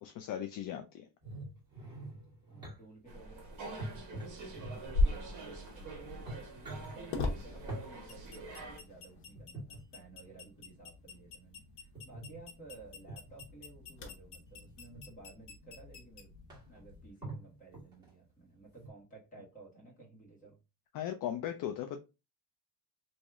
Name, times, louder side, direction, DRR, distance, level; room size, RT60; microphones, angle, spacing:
voice 1, 0.0-1.1 20.9-22.0, left 10 dB, 55° left, 6 dB, 0.4 m, -38 dB
sound 1, 1.2-2.8 3.8-5.1 5.7-5.8 6.1-6.9 7.7-7.9 9.3-9.8 11.9-12.4 13.1-13.4 14.5-15.0 15.8-15.9 16.1-16.2 16.5-16.8 17.2-18.1 18.8-18.9, right 1 dB, 10° right, 1.7 m, -45 dB
voice 2, 2.5-16.3 16.6-20.6, right 3 dB, 20° left, -2 dB, 1.5 m, -55 dB
sound 2, 3.1-8.8, right 3 dB, 45° right, 1.1 m, -46 dB
sound 3, 4.9-17.1, left 2 dB, 75° left, 1.1 m, -40 dB
3.1 x 2.7 x 3.5 m, 0.27 s
cardioid pair, 175°, 42 cm